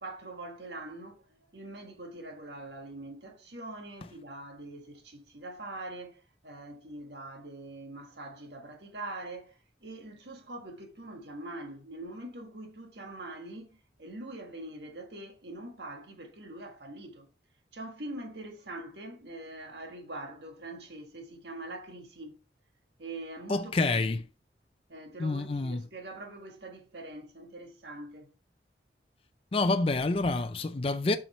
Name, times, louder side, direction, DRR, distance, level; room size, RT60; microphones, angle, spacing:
voice 1, 0.0-17.3 17.7-22.4 23.0-23.9 24.9-28.3, right 2 dB, 80° right, 1.6 m, -43 dB
voice 2, 23.5-24.2 25.2-25.9 29.5-31.2, left 3 dB, 30° left, 0.4 m, -28 dB
7.3 x 5.7 x 3.1 m
head